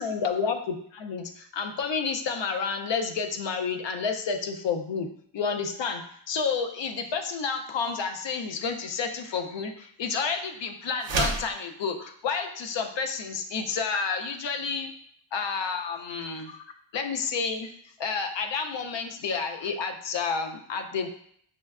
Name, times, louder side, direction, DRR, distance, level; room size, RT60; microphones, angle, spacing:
voice 1, 0.0-5.1 5.3-14.9 15.3-16.6 16.9-17.7 18.0-21.1, left 5 dB, 60° left, 5 dB, 0.5 m, -30 dB
sound 1, 11.0-11.5, right 3 dB, 65° right, 0.7 m, -27 dB
6.2 x 2.2 x 2.3 m, 0.64 s
wide cardioid pair, 180°, 49 cm